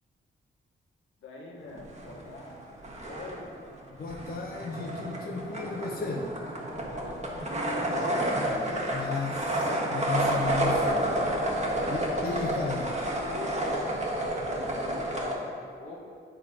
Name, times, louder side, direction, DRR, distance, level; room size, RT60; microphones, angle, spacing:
voice 1, 1.2-3.5 6.8-9.2 11.6-16.0, left 2 dB, 75° left, -2 dB, 1.3 m, -44 dB
sound 1, 1.8-2.6 2.8-15.3, right 1 dB, 35° right, 1.5 m, -30 dB
voice 2, 3.9-6.4 8.9-11.1 11.9-12.9, left 4 dB, 45° left, 0 dB, 0.7 m, -34 dB
8.7 x 3.4 x 5.1 m, 2.3 s
cardioid pair, 60°, 21 cm